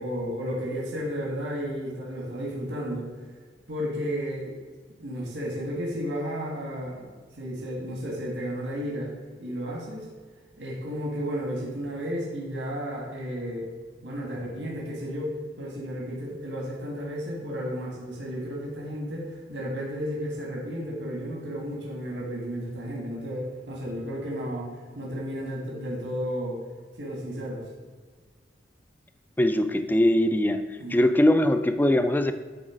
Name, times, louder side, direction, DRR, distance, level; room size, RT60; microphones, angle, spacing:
voice 1, 0.0-3.1 3.7-4.5 5.0-7.1 7.3-9.1 9.4-10.1 10.6-13.7 14.0-24.7 25.0-26.6 27.0-27.6 30.8-31.0, equal, 85° right, -3 dB, 1.8 m, -33 dB
voice 2, 29.4-30.6 30.9-32.3, left 1 dB, 10° left, 9 dB, 0.3 m, -21 dB
10.0 x 4.1 x 5.0 m, 1.5 s
head